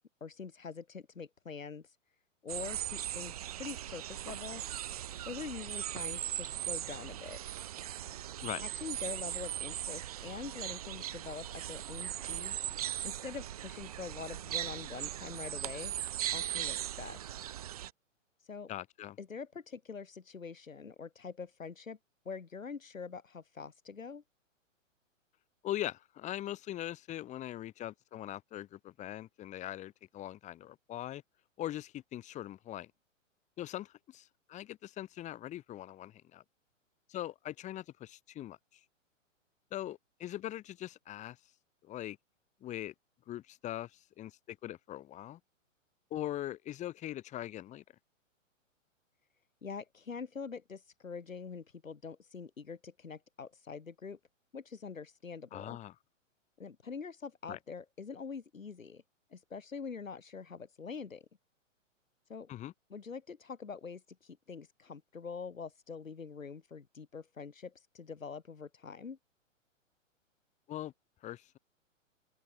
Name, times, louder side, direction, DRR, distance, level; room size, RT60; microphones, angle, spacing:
voice 1, 0.2-2.0 2.4-4.6 5.2-7.4 8.6-12.6 13.0-15.9 16.3-17.3 18.4-18.7 19.2-22.0 22.2-24.2 49.6-54.2 54.5-55.8 56.6-59.0 59.3-61.3 62.3-62.5 62.9-69.2, left 5 dB, 80° left, 1.1 m, -44 dB
sound 1, 2.5-17.9, right 12 dB, 30° right, 0.5 m, -39 dB
voice 2, 18.7-19.2 25.6-31.2 31.6-32.9 33.6-36.4 37.1-38.6 39.7-41.4 41.8-42.2 42.6-42.9 43.3-45.4 46.1-47.8 55.5-55.9 57.5-57.6 62.5-62.7 70.7-70.9 71.2-71.6, left 13 dB, 20° left, 1.9 m, -41 dB
open air
figure-of-eight pair, 115°, 39 cm